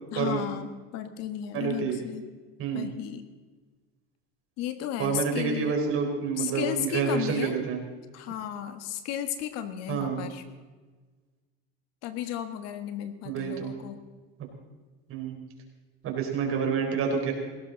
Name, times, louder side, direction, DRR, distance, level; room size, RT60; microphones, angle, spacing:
voice 1, 0.1-2.2 2.7-3.2 4.6-5.7 6.4-7.5 8.1-10.4 12.0-14.0, left 10 dB, 60° left, 9 dB, 1.6 m, -34 dB
voice 2, 1.5-2.0 2.6-2.9 5.0-7.8 9.9-10.2 13.2-13.7 15.1-15.4 16.0-17.3, right 6 dB, 50° right, 2 dB, 4.5 m, -28 dB
18.5 x 16.5 x 4.0 m, 1.3 s
supercardioid pair, 110°, 29 cm